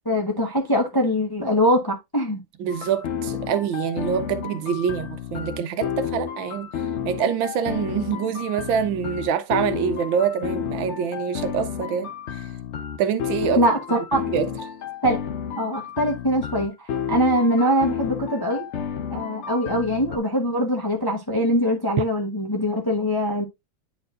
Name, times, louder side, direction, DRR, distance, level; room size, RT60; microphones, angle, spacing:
voice 1, 0.0-2.4 13.6-14.2 15.0-15.2 15.6-18.6 19.1-23.4, equal, 20° left, 0.7 m, -22 dB
voice 2, 2.6-6.7 7.0-12.1 13.0-13.6 14.3-14.5, right 7 dB, 75° right, 1.4 m, -25 dB
sound 1, 2.7-20.2, left 8 dB, 70° left, 0.6 m, -31 dB
9.4 x 4.4 x 2.5 m
omnidirectional pair, 2.2 m